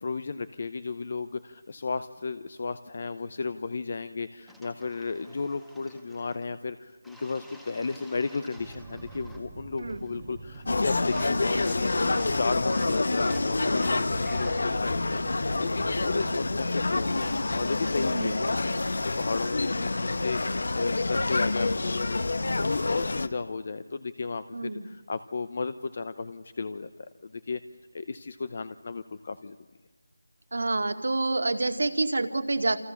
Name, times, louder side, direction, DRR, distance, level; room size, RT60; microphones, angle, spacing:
voice 1, 0.0-11.9 12.2-18.7 19.0-27.6 27.9-29.6, left 4 dB, 35° left, 13 dB, 0.8 m, -34 dB
sound 1, 4.5-6.5 7.0-9.5 9.8-10.2 10.5-14.8, equal, ahead, 1.5 m, -52 dB
sound 2, 8.6-17.9, right 3 dB, 20° right, 1.7 m, -44 dB
sound 3, 10.7-23.3, left 2 dB, 55° left, 1.5 m, -27 dB
voice 2, 24.5-24.9 30.5-32.8, right 2 dB, 60° right, 7 dB, 2.2 m, -27 dB
28.5 x 27.0 x 7.2 m, 1.2 s
figure-of-eight pair, 175°, 0 cm